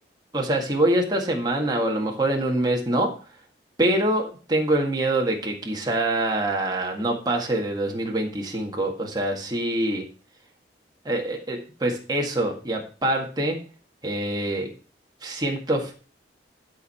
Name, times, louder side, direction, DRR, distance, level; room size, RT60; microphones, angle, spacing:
voice 1, 0.3-3.1 3.8-10.1 11.1-13.6 14.0-14.7 15.2-15.9, right 1 dB, 20° right, 0 dB, 1.9 m, -25 dB
12.0 x 4.7 x 5.6 m, 0.38 s
head